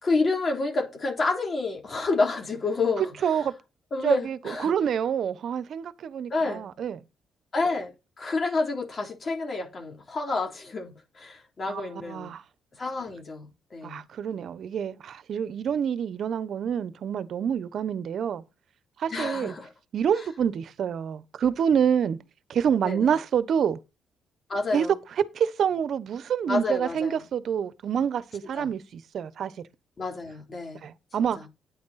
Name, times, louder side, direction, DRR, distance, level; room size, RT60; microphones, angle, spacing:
voice 1, 0.0-3.5 3.9-4.7 6.3-6.6 7.5-12.3 12.8-14.0 19.1-19.7 20.1-20.3 22.8-23.2 24.5-24.9 26.5-27.2 28.5-28.7 30.0-30.9 31.2-31.5, left 3 dB, 40° left, 3.4 m, -29 dB
voice 2, 3.2-3.5 4.0-4.4 4.6-7.0 11.7-11.8 12.1-12.4 13.8-18.4 19.0-19.5 19.9-22.2 22.5-23.8 24.7-24.9 25.3-29.5 30.8-31.4, right 8 dB, 60° right, 1.0 m, -27 dB
9.6 x 8.6 x 4.2 m
cardioid pair, 90°, 0 cm